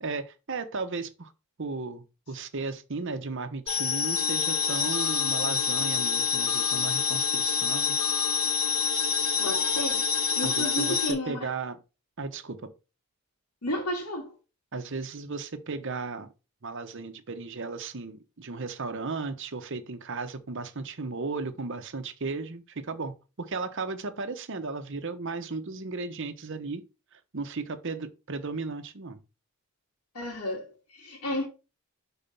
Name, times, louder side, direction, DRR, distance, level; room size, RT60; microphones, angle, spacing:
voice 1, 0.0-1.3 1.6-8.0 10.4-11.8 12.2-12.7 14.7-16.3 16.6-26.8 27.1-29.2, right 4 dB, 55° right, 0.9 m, -35 dB
sound 1, 3.7-11.1, left 6 dB, 65° left, 1.8 m, -27 dB
voice 2, 9.4-10.1 10.3-11.5 13.6-14.4 30.1-31.5, left 1 dB, 85° left, 2.3 m, -32 dB
5.7 x 4.1 x 5.4 m
head